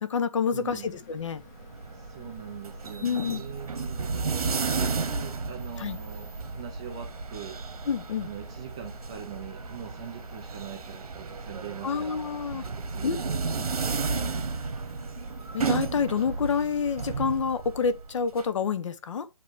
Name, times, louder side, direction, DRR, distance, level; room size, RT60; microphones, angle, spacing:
voice 1, 0.0-1.4 3.0-3.4 5.8-6.0 7.9-8.3 11.8-12.7 13.0-13.2 15.5-19.3, left 6 dB, 55° left, 1.0 m, -28 dB
voice 2, 0.5-1.0 1.9-7.6 8.2-12.5 12.8-13.8 14.2-14.9, right 8 dB, 10° right, 0.3 m, -42 dB
sound 1, 0.7-17.4, left 3 dB, 30° left, 1.4 m, -53 dB
sound 2, 1.4-18.4, right 4 dB, 75° right, 1.2 m, -33 dB
8.7 x 3.0 x 4.7 m
hypercardioid pair, 160°, 19 cm